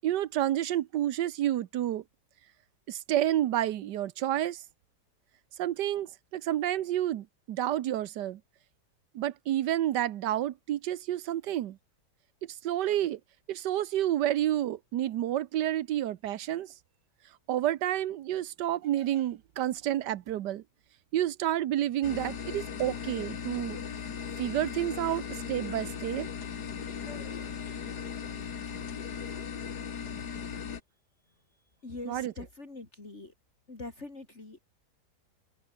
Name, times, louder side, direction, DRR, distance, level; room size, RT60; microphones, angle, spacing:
voice 1, 0.0-2.0 2.9-4.6 5.6-8.4 9.1-11.8 12.4-13.2 13.5-16.7 17.5-20.6 21.1-23.8 24.4-26.3 32.1-32.3, right 12 dB, 85° right, 1.5 m, -30 dB
sound 1, 22.0-30.8, left 7 dB, 70° left, 2.2 m, -38 dB
voice 2, 27.1-27.5 31.8-33.3 33.7-34.6, left 2 dB, 40° left, 3.7 m, -43 dB
omnidirectional pair, 1.8 m